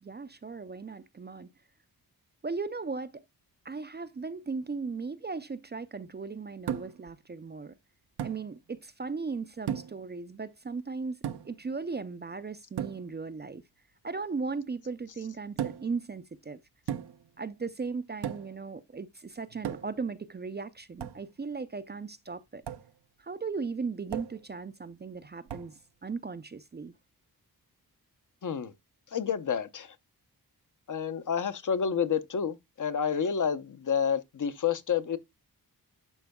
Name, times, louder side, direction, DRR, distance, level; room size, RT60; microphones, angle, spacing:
voice 1, 0.0-1.5 2.4-3.2 3.6-7.8 8.2-11.2 11.4-13.6 14.0-16.6 17.4-22.6 23.2-26.9, right 4 dB, 30° right, 0.4 m, -37 dB
sound 1, 6.7-7.1 8.2-8.4 9.7-10.1 11.2-11.6 12.8-13.1 15.6-16.0 16.9-17.3 18.2-18.6 19.6-20.1 21.0-21.2 22.7-22.9 24.1-24.4 25.5-25.8, right 9 dB, 80° right, 0.7 m, -35 dB
voice 2, 28.4-28.7 29.1-30.0 30.9-35.2, left 7 dB, 50° left, 0.7 m, -29 dB
12.0 x 4.5 x 2.2 m
wide cardioid pair, 130°, 38 cm